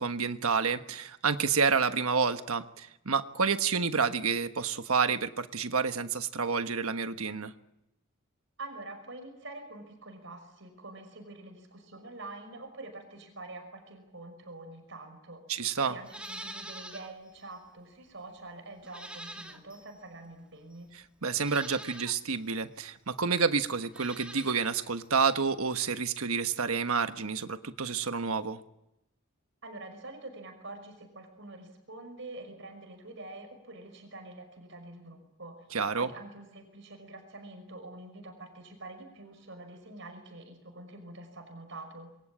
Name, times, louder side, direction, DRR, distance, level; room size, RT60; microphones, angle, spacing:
voice 1, 0.0-7.5 15.5-16.0 21.2-28.6 35.7-36.1, right 5 dB, 90° right, 9 dB, 1.3 m, -29 dB
voice 2, 8.6-15.4 15.8-20.9 29.6-35.7 36.0-42.1, right 2 dB, 60° right, 6 dB, 5.7 m, -46 dB
Livestock farm animals working animals, 16.0-17.1 17.5-17.6 18.8-19.9 20.7-20.8 21.4-22.2 23.8-24.7 25.0-25.1, right 1 dB, 5° right, 2.1 m, -44 dB
27.5 x 23.5 x 8.7 m, 0.88 s
head